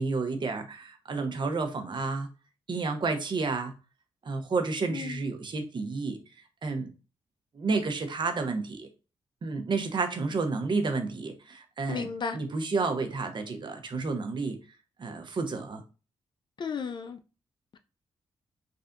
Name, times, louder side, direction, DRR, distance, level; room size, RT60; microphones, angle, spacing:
voice 1, 0.0-2.3 2.7-3.7 4.2-6.2 6.6-6.9 7.5-8.9 9.4-14.6 15.0-15.8, right 4 dB, 50° right, 0.7 m, -30 dB
voice 2, 11.9-12.4 16.6-17.2, left 5 dB, 45° left, 0.4 m, -33 dB
3.3 x 2.5 x 2.5 m
cardioid pair, 70°, 11 cm